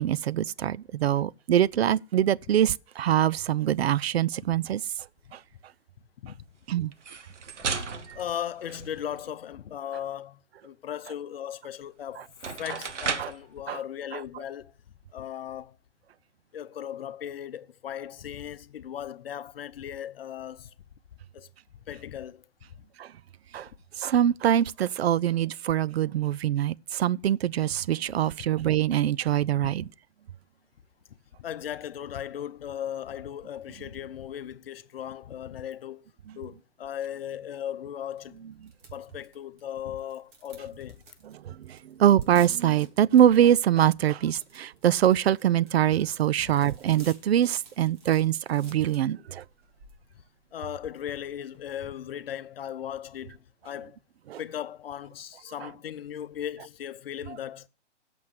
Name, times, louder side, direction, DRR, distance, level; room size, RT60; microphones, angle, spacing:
voice 1, 0.0-4.8 5.3-5.4 6.7-6.9 12.7-12.8 13.2-13.3 13.7-13.8 23.0-23.1 23.5-23.7 24.0-29.8 41.4-49.4 54.3-54.4, right 11 dB, 60° right, 0.5 m, -24 dB
sound 1, 6.9-9.3 11.8-11.9 12.3-13.5, right 5 dB, 90° right, 1.3 m, -35 dB
voice 2, 8.1-14.7 15.1-15.8 16.5-20.7 21.3-21.5 21.9-22.5 29.6-29.9 31.4-36.0 36.4-38.4 38.9-41.0 46.4-46.5 50.5-54.0 54.4-57.7, left 10 dB, 55° left, 0.9 m, -37 dB
sound 2, 38.2-53.1, right 3 dB, 45° right, 2.8 m, -55 dB
8.6 x 6.3 x 8.1 m
hypercardioid pair, 150°, 35 cm